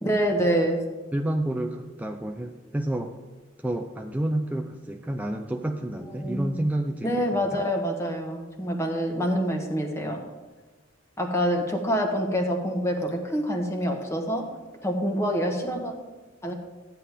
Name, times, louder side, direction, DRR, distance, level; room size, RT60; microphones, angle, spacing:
voice 1, 0.0-0.8 6.2-6.6 7.0-10.2 11.2-14.5 14.8-15.9 16.4-16.5, equal, 15° left, 1 dB, 1.3 m, -26 dB
voice 2, 1.1-3.1 3.6-7.7, right 1 dB, 10° right, 3 dB, 0.5 m, -30 dB
13.5 x 9.1 x 3.5 m, 1.2 s
head